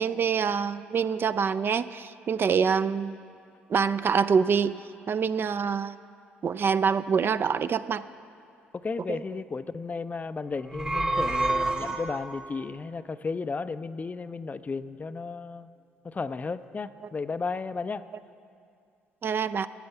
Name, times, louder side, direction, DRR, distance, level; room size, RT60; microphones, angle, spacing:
voice 1, 0.0-3.1 3.7-4.7 5.1-6.0 6.4-8.0 9.1-9.2 19.2-19.7, right 6 dB, 40° right, 14 dB, 0.3 m, -25 dB
voice 2, 8.7-15.7 16.0-18.0, left 4 dB, 30° left, 13 dB, 0.4 m, -34 dB
sound 1, 10.6-12.5, right 2 dB, 15° right, 1.0 m, -28 dB
13.0 x 7.0 x 6.9 m, 2.4 s
hypercardioid pair, 50°, 5 cm